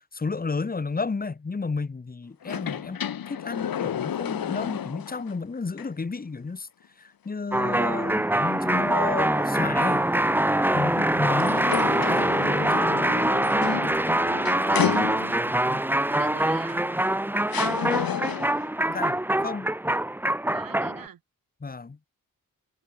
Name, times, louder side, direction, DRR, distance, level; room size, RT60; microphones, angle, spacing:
voice 1, 0.0-3.0 3.3-6.7 7.0-10.1 10.7-13.2 15.7-15.8 18.9-19.7 21.6-22.0, left 4 dB, 25° left, 1.9 m, -32 dB
sound 1, 2.4-5.3 5.8-5.9 11.2-15.6 16.7-16.8 17.5-18.7, left 9 dB, 85° left, 2.8 m, -31 dB
sound 2, 7.5-21.1, right 1 dB, 5° right, 1.2 m, -24 dB
voice 2, 14.3-15.1 16.1-16.8 20.5-21.2, right 9 dB, 80° right, 3.1 m, -44 dB
wide cardioid pair, 160°, 34 cm